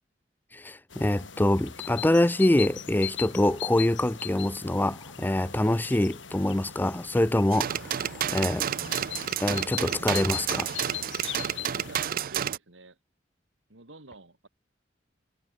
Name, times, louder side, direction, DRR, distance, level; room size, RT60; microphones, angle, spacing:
voice 1, 0.5-8.7 9.4-10.7, left 1 dB, 10° left, 0.5 m, -25 dB
sound 1, 0.9-12.1, left 10 dB, 80° left, 5.4 m, -40 dB
sound 2, 7.5-12.6, right 10 dB, 50° right, 0.4 m, -30 dB
voice 2, 11.8-13.0 13.7-14.5, right 2 dB, 85° right, 3.1 m, -48 dB
head